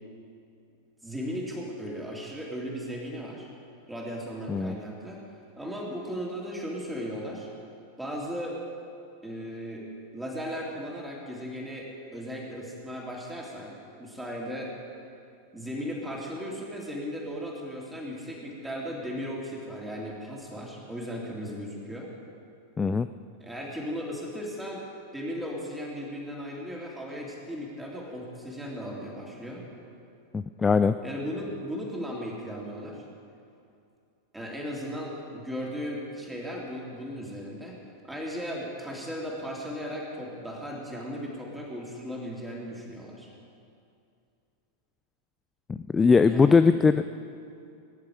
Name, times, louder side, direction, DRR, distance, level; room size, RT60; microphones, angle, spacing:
voice 1, 1.0-3.5 3.9-5.2 5.6-7.5 8.0-8.6 9.2-9.8 10.1-14.7 15.5-22.1 23.4-24.8 25.1-29.6 31.0-33.0 34.3-37.8 38.0-43.3 46.3-46.6, equal, 5° right, -3 dB, 3.1 m, -36 dB
voice 2, 22.8-23.1 30.3-31.0 45.7-47.0, left 5 dB, 15° left, 11 dB, 0.3 m, -21 dB
20.0 x 10.5 x 5.0 m, 2.5 s
figure-of-eight pair, 90°, 0 cm